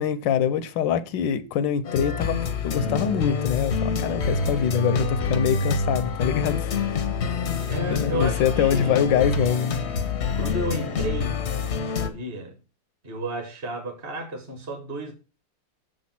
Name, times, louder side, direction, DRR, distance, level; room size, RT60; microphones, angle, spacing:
voice 1, 0.0-2.4 2.6-7.0 7.9-9.8, left 8 dB, 80° left, 1.4 m, -24 dB
sound 1, 1.9-12.1, left 4 dB, 50° left, 0.8 m, -26 dB
voice 2, 7.4-9.1 10.3-12.5 13.0-15.1, equal, 30° right, 1.5 m, -32 dB
6.8 x 5.1 x 5.8 m
omnidirectional pair, 2.0 m